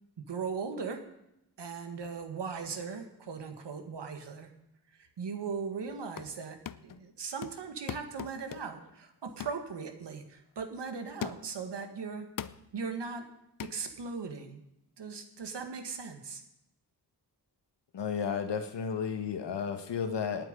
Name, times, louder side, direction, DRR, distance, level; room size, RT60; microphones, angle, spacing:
voice 1, 0.2-1.0 1.6-4.5 5.0-6.6 6.8-12.3 12.7-13.2 13.7-14.6 15.0-16.4, right 5 dB, 85° right, 6 dB, 1.8 m, -38 dB
sound 1, 5.9-6.4 6.6-7.0 7.4-8.8 9.4-9.6 10.1-10.3 11.2-11.6 12.4-12.7 13.6-13.8, left 9 dB, 55° left, 0.6 m, -41 dB
voice 2, 17.9-20.4, left 6 dB, 85° left, 6 dB, 1.3 m, -33 dB
18.5 x 9.2 x 5.3 m, 0.86 s
wide cardioid pair, 150°, 41 cm